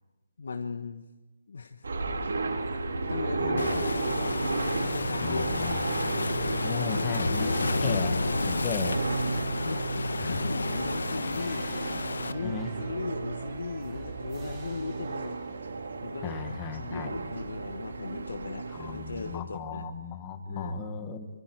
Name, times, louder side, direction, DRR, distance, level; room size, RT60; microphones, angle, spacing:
voice 1, 0.4-1.0 1.5-1.9 2.1-2.3 3.1-4.4 4.8-5.9 6.6-8.7 9.6-15.4 16.0-19.9 20.5-20.8, left 4 dB, 55° left, 6 dB, 1.3 m, -38 dB
sound 1, 1.8-19.4, right 3 dB, 65° right, 3.6 m, -33 dB
voice 2, 3.4-3.7 5.2-5.8 6.6-9.1 10.2-10.4 12.4-12.7 16.2-17.1 18.8-21.3, left 5 dB, 10° left, 7 dB, 1.4 m, -35 dB
Waves surf, 3.6-12.3, left 3 dB, 85° left, 1.3 m, -32 dB
sound 2, 7.1-15.9, right 3 dB, 15° right, 3.6 m, -48 dB
26.5 x 24.0 x 4.7 m, 1.1 s
hypercardioid pair, 180°, 0 cm